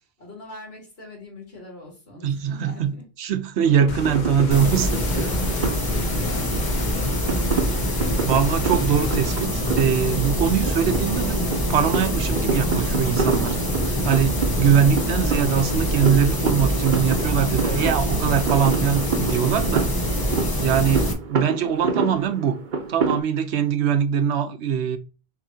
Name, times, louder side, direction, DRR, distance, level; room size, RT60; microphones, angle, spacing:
voice 1, 0.2-3.1 5.8-8.3, left 2 dB, 70° left, 2.3 m, -43 dB
voice 2, 2.2-2.9 3.2-4.9 5.2-5.4 8.2-11.4 11.7-13.6 13.8-19.9 20.6-22.6 22.9-25.0, right 8 dB, 85° right, 0.9 m, -22 dB
sound 1, 3.6-23.2, right 4 dB, 50° right, 0.8 m, -29 dB
sound 2, 3.9-9.4, left 5 dB, 55° left, 0.6 m, -33 dB
sound 3, 4.5-21.1, equal, 20° left, 0.8 m, -24 dB
6.2 x 3.1 x 2.7 m
omnidirectional pair, 1.1 m